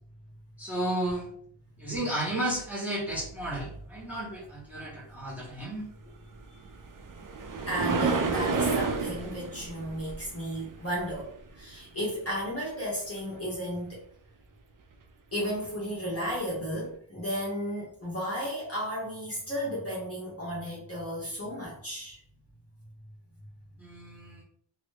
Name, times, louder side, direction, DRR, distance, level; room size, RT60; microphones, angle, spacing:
voice 1, 0.6-1.3 1.8-5.9 23.8-24.4, right 1 dB, 5° right, -6 dB, 1.4 m, -33 dB
sound 1, 6.4-11.6 15.5-15.6 16.3-16.4, right 4 dB, 45° right, 0.4 m, -31 dB
voice 2, 7.7-14.0 15.3-22.2, equal, 30° left, -6 dB, 1.0 m, -34 dB
2.9 x 2.7 x 3.2 m, 0.63 s
wide cardioid pair, 95°, 49 cm